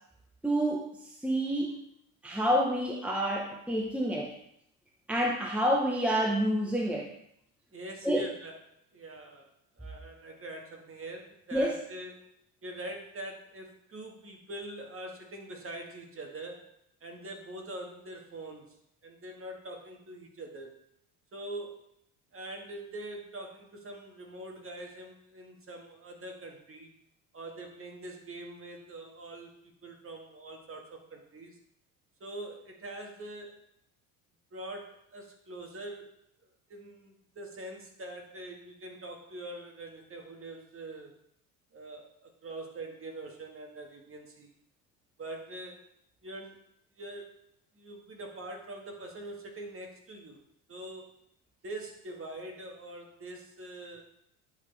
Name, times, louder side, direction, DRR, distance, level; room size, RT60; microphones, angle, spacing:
voice 1, 0.4-1.8 2.2-4.3 5.1-7.1 8.0-8.2 11.5-11.8, equal, 5° right, -1 dB, 1.1 m, -28 dB
voice 2, 7.7-8.6 8.9-9.5 9.8-12.3 12.6-16.7 17.0-20.7 21.3-21.9 22.3-26.9 27.3-31.6 32.2-33.6 34.5-36.1 36.7-41.1 41.7-44.5 45.2-45.9 46.2-46.6 47.0-47.4 47.7-50.4 50.7-51.1 51.6-54.0, right 1 dB, 30° right, 2 dB, 1.7 m, -44 dB
10.5 x 4.2 x 3.4 m, 0.74 s
hypercardioid pair, 75°, 43 cm